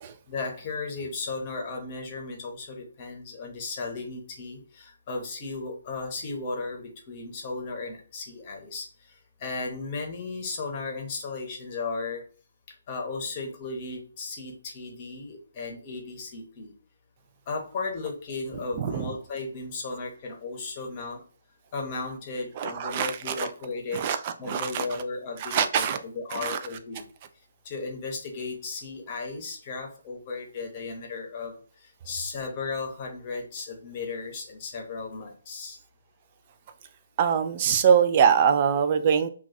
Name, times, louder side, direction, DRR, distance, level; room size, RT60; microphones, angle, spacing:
voice 1, 0.3-12.2 12.9-16.7 17.5-21.2 21.7-24.1 24.4-27.1 27.6-35.8, left 3 dB, 30° left, 2 dB, 0.8 m, -35 dB
voice 2, 18.5-19.1 22.6-23.5 23.9-24.9 25.4-26.0 26.3-26.8 37.2-39.3, right 7 dB, 30° right, 8 dB, 0.3 m, -24 dB
2.4 x 2.3 x 3.9 m, 0.42 s
hypercardioid pair, 155°, 0 cm